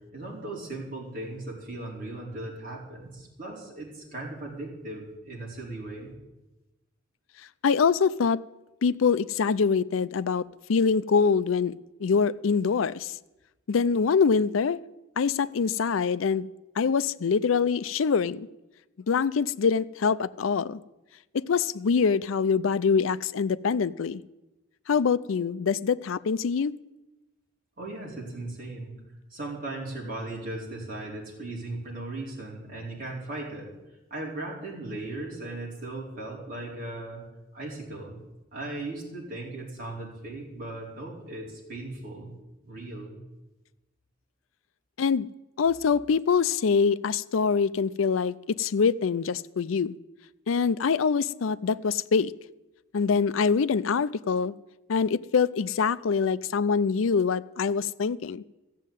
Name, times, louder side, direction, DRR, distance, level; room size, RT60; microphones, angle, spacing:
voice 1, 0.1-6.1 27.8-29.0 29.3-33.7 34.1-37.2 37.5-38.1 38.5-42.3 42.6-43.2, right 2 dB, 45° right, -3 dB, 4.5 m, -37 dB
voice 2, 7.6-8.4 8.8-11.7 12.0-13.2 13.7-14.8 15.2-16.5 16.8-18.5 19.1-20.8 21.3-24.2 24.9-26.7 45.0-45.3 45.6-49.9 50.5-52.3 52.9-54.5 54.9-58.4, left 5 dB, 80° left, 17 dB, 0.5 m, -24 dB
15.0 x 7.5 x 9.1 m, 1.0 s
head